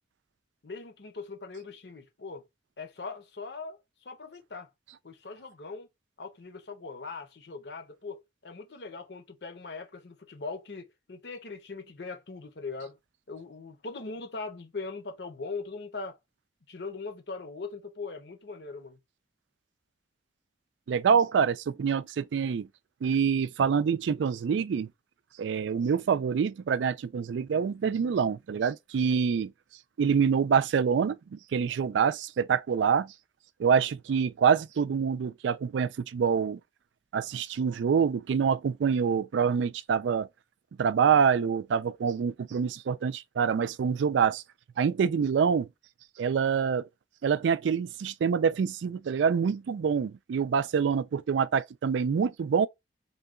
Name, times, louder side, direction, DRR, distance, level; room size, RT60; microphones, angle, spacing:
voice 1, 0.6-2.4 2.8-4.7 5.0-5.9 6.2-13.0 13.3-16.2 16.7-19.0, left 4 dB, 70° left, 0.8 m, -40 dB
voice 2, 20.9-22.7 23.0-24.9 25.4-29.5 30.0-33.1 33.6-36.6 37.1-40.3 40.8-44.4 44.8-45.7 46.2-46.9 47.2-52.7, right 6 dB, 85° right, 0.3 m, -26 dB
3.7 x 2.3 x 3.6 m
head